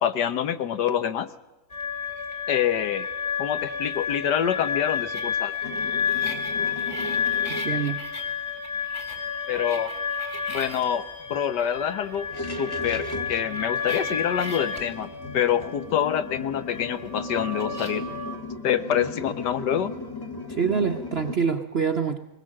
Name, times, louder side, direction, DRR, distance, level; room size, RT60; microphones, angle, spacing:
voice 1, 0.0-1.3 2.5-3.1 3.4-5.5 9.5-9.9 10.5-18.1 18.6-19.9, left 9 dB, 65° left, 12 dB, 1.4 m, -26 dB
sound 1, 1.7-18.3, left 6 dB, 35° left, 3.4 m, -31 dB
sound 2, 5.6-7.7 10.3-10.4 10.7-10.9 11.3-11.4 12.1-21.4, left 2 dB, 15° left, 1.2 m, -37 dB
voice 2, 7.6-8.0 20.5-22.2, right 6 dB, 45° right, 5 dB, 0.8 m, -25 dB
21.0 x 19.5 x 7.5 m, 1.1 s
omnidirectional pair, 2.1 m